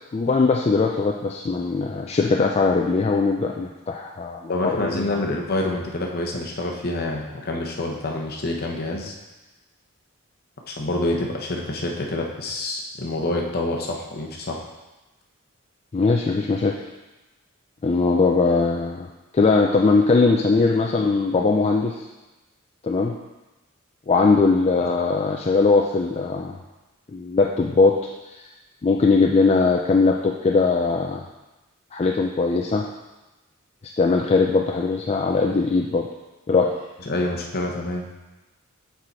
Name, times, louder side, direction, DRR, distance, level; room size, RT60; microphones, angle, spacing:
voice 1, 0.1-5.2 15.9-16.8 17.8-19.1 19.3-22.0 22.8-23.1 24.1-26.6 27.1-28.0 28.8-31.2 31.9-32.8 34.0-36.1 36.5-36.7, left 4 dB, 30° left, 0 dB, 0.4 m, -20 dB
voice 2, 4.5-9.1 10.7-14.6 37.1-38.1, left 2 dB, 50° left, 0 dB, 1.0 m, -27 dB
6.4 x 4.8 x 4.2 m, 1.1 s
head